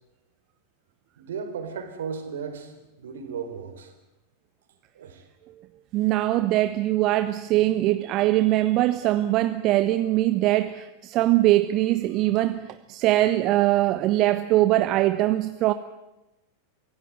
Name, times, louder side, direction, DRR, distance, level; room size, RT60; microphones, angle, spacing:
voice 1, 1.2-3.9 4.9-5.2, right 6 dB, 60° right, 7 dB, 4.0 m, -35 dB
voice 2, 5.9-15.7, right 15 dB, 40° right, 12 dB, 0.9 m, -22 dB
24.5 x 16.5 x 9.3 m, 0.99 s
figure-of-eight pair, 90°, 0 cm